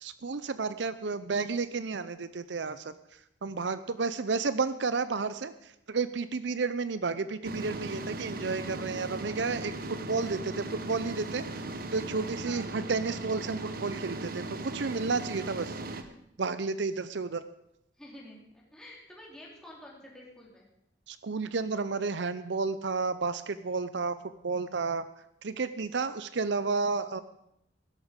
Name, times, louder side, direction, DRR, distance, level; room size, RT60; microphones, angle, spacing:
voice 1, 0.0-11.5 11.9-15.8 16.4-17.4 21.1-25.0 25.4-27.2, right 4 dB, 70° right, 13 dB, 0.6 m, -32 dB
sound 1, 7.4-16.0, right 2 dB, 50° right, 1.1 m, -38 dB
voice 2, 18.0-20.7, left 1 dB, 5° left, -3 dB, 3.9 m, -49 dB
16.0 x 13.0 x 5.2 m, 0.79 s
head